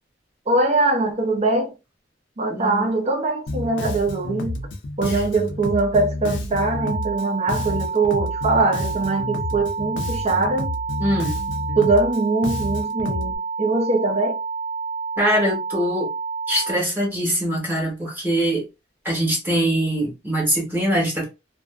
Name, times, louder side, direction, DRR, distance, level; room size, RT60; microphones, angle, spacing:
voice 1, 0.5-1.7 2.4-4.5 5.0-10.7 11.7-14.4, right 3 dB, 35° right, 0.6 m, -22 dB
voice 2, 2.5-2.9 5.1-5.2 11.0-11.3 15.2-16.1 16.5-18.6 19.0-21.2, equal, 10° right, 0.9 m, -23 dB
Bass guitar, 3.5-13.4, left 2 dB, 70° left, 0.5 m, -29 dB
sound 1, 6.8-16.8, right 5 dB, 85° right, 0.5 m, -29 dB
2.4 x 2.4 x 2.2 m
head